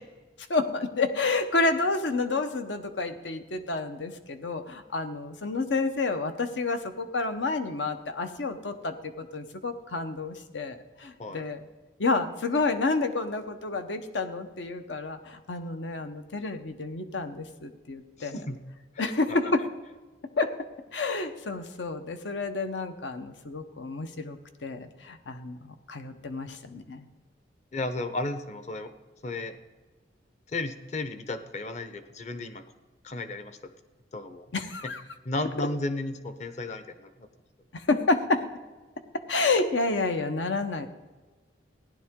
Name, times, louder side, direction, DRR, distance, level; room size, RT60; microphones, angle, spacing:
voice 1, 0.5-11.6 12.0-18.4 19.0-19.7 20.4-20.5 20.9-27.1 34.5-35.0 37.7-38.5 39.3-40.9, left 3 dB, 85° left, 8 dB, 0.9 m, -29 dB
voice 2, 18.2-18.6 18.9-19.4 27.7-28.9 29.2-29.6 30.5-32.6 33.0-33.7 34.1-34.5 35.2-37.3, left 2 dB, 40° left, 10 dB, 0.7 m, -34 dB
15.5 x 10.5 x 3.7 m, 1.3 s
head